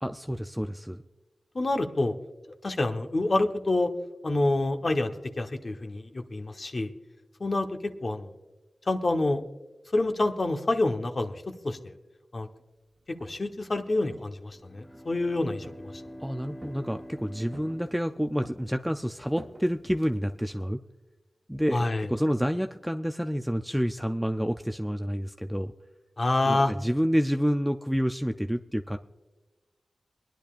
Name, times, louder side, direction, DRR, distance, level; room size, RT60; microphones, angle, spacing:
voice 1, 0.0-1.0 16.2-20.8 21.5-25.7 26.4-29.0, equal, 5° right, 6 dB, 0.4 m, -29 dB
voice 2, 1.5-2.1 2.6-3.9 4.2-5.1 5.4-6.9 7.4-8.3 8.9-9.4 9.9-11.8 12.3-12.5 13.2-15.7 21.7-22.1 26.2-26.7, left 2 dB, 50° left, 4 dB, 1.1 m, -27 dB
Walk footsteps, 13.0-13.6 14.1-15.1 15.6-16.2 16.6-17.1 17.5-18.1 18.4-20.6, right 2 dB, 55° right, 1.1 m, -50 dB
Bowed string instrument, 14.5-18.8, equal, 30° left, 2.4 m, -46 dB
24.0 x 10.5 x 2.5 m, 1.1 s
wide cardioid pair, 65°, 0 cm